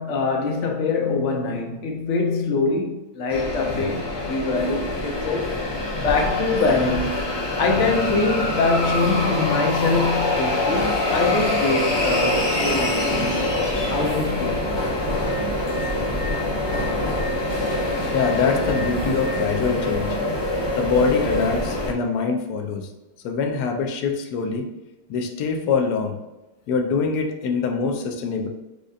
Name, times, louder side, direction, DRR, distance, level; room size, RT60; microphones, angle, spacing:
voice 1, 0.0-5.6 6.0-13.5 13.9-14.7, left 3 dB, 60° left, 0.9 m, -24 dB
sound 1, 3.3-21.9, left 2 dB, 40° left, 0.4 m, -24 dB
voice 2, 18.1-20.2 20.7-22.9 23.2-24.7 25.1-26.2 26.7-28.5, left 5 dB, 80° left, 1.1 m, -24 dB
6.4 x 2.6 x 2.4 m
omnidirectional pair, 1.7 m